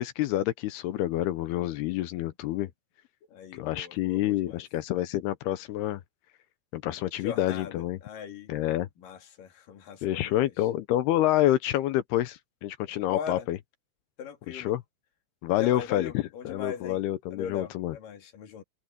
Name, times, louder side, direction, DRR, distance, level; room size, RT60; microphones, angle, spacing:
voice 1, 0.0-2.7 3.5-6.0 6.7-8.0 8.5-8.9 10.0-13.6 14.5-14.8 15.4-17.9, left 14 dB, 80° left, 2.8 m, -28 dB
voice 2, 3.3-4.6 7.2-8.5 9.0-10.5 13.1-13.5 14.2-14.7 15.6-17.0 17.3-18.6, left 7 dB, 60° left, 3.9 m, -39 dB
omnidirectional pair, 4.7 m